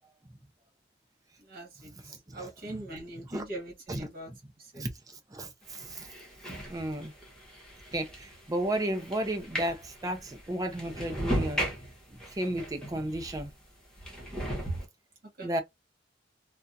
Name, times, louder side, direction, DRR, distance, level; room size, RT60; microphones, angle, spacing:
voice 1, 1.5-4.3 4.7-4.8 15.4-15.6, right 1 dB, 50° right, 1.8 m, -42 dB
voice 2, 2.0-2.8 3.2-3.4 3.9-4.1 4.8-6.1 6.7-7.1 7.9-11.6 12.1-13.5 15.4-15.6, right 1 dB, 20° right, 0.5 m, -34 dB
sound 1, 5.6-13.5 14.0-14.9, equal, 5° left, 1.2 m, -37 dB
3.4 x 2.3 x 2.6 m
head